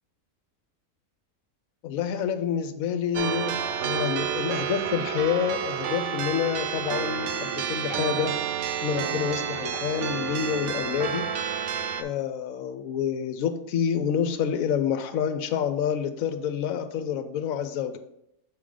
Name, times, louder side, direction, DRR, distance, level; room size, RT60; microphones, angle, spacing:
voice 1, 1.8-8.3 8.8-11.3 12.0-18.0, left 8 dB, 70° left, 9 dB, 0.9 m, -28 dB
sound 1, 3.1-12.0, right 8 dB, 65° right, 0.7 m, -30 dB
6.6 x 3.8 x 4.9 m, 0.80 s
omnidirectional pair, 1.7 m